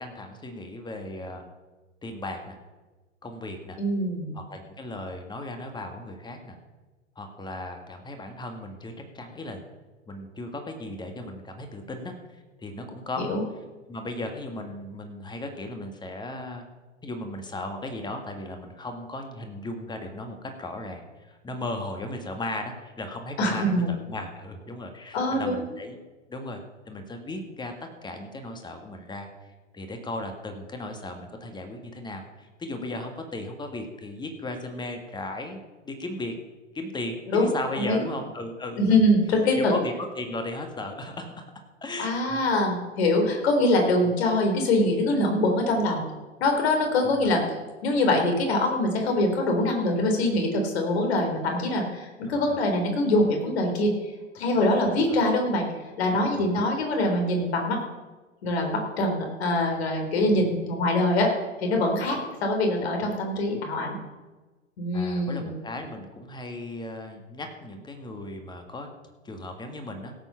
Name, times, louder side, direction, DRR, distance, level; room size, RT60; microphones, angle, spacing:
voice 1, 0.0-1.4 2.0-2.6 3.2-3.8 4.3-6.6 7.2-9.6 10.1-12.1 12.6-13.3 13.9-16.7 17.0-26.0 26.3-26.6 26.9-27.7 28.0-29.3 29.7-35.6 35.8-36.3 36.7-39.0 39.5-41.5 41.8-42.4 44.0-44.1 47.0-47.3 52.3-52.6 54.8-55.2 56.4-56.6 60.3-60.6 62.0-62.2 63.5-63.6 64.9-68.9 69.2-70.1, left 2 dB, 10° left, 5 dB, 1.8 m, -36 dB
voice 2, 3.8-4.4 13.2-13.4 23.4-23.9 25.1-25.6 37.3-38.1 38.8-39.7 42.0-46.0 46.4-47.4 47.8-53.9 54.3-55.7 56.0-57.8 58.4-61.3 61.6-64.0 64.8-65.6, left 1 dB, 55° left, 3 dB, 3.7 m, -24 dB
17.0 x 8.1 x 5.7 m, 1.2 s
figure-of-eight pair, 100°, 38 cm